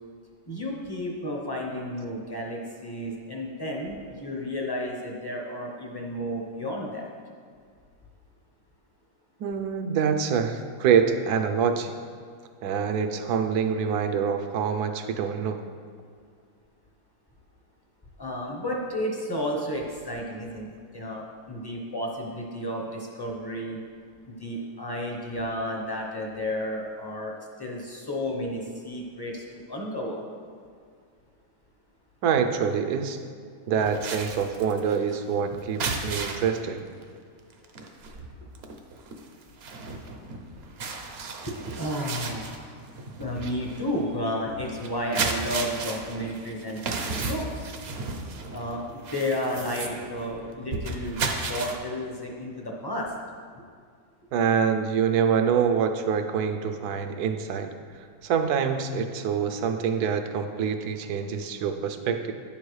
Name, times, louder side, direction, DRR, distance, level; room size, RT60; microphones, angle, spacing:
voice 1, 0.5-7.1 18.2-23.8 24.3-30.2 41.4-42.8 43.2-47.7 48.5-51.2 51.5-53.1, equal, 20° left, -1 dB, 0.6 m, -32 dB
voice 2, 9.4-11.9 12.6-15.6 32.2-33.2 33.7-36.8 54.3-62.3, right 7 dB, 75° right, 7 dB, 1.1 m, -25 dB
sound 1, 33.8-36.6 37.0-37.2 37.5-51.8, right 3 dB, 55° right, 0.7 m, -34 dB
9.6 x 7.1 x 3.2 m, 2.1 s
omnidirectional pair, 1.7 m